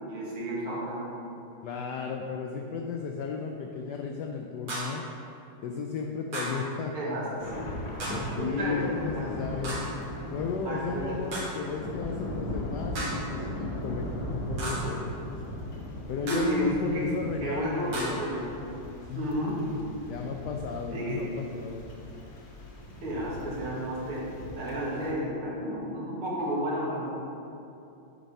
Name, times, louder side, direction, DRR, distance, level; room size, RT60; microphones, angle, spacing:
voice 1, 0.1-1.1 6.9-7.6 8.4-9.2 10.6-11.2 16.2-17.0 17.4-18.5 19.2-19.6 20.9-21.2 23.0-24.2 24.6-27.0, equal, 90° right, -6 dB, 2.5 m, -32 dB
voice 2, 1.6-5.0 5.6-7.4 8.4-9.8 10.3-15.3 16.1-18.2 19.1-19.8 20.1-21.8, left 5 dB, 80° left, 2 dB, 0.9 m, -34 dB
sound 1, 4.7-5.0 6.3-6.7 8.0-8.3 9.6-10.0 11.3-11.6 13.0-13.3 14.6-15.0 16.3-16.6 17.9-18.3, right 1 dB, 60° right, 2.1 m, -35 dB
Thunder / Rain, 7.4-25.1, left 1 dB, 55° left, 1.4 m, -38 dB
7.9 x 4.1 x 5.3 m, 2.8 s
omnidirectional pair, 2.3 m